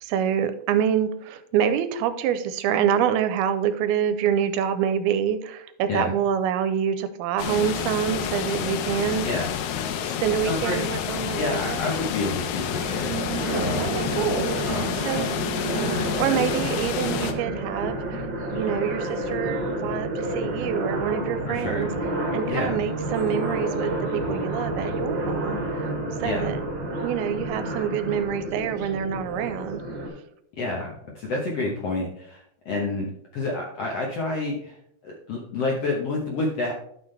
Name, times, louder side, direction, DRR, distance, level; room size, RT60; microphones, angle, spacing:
voice 1, 0.0-9.3 10.0-11.8 13.8-14.8 15.1-15.4 16.2-18.3 18.5-21.9 22.3-25.9 26.2-26.6 27.0-29.8, right 9 dB, 85° right, 11 dB, 2.5 m, -26 dB
sound 1, 7.4-17.3, left 8 dB, 85° left, 2.7 m, -29 dB
voice 2, 10.4-10.8 11.3-13.1 13.5-13.8 14.6-15.0 21.5-21.9 22.5-22.7 26.2-26.5 30.6-33.0 33.3-34.7 35.0-36.7, left 2 dB, 65° left, -2 dB, 1.5 m, -29 dB
sound 2, 12.8-30.1, right 1 dB, 40° right, 1.7 m, -29 dB
12.0 x 6.1 x 3.3 m, 0.71 s
omnidirectional pair, 4.5 m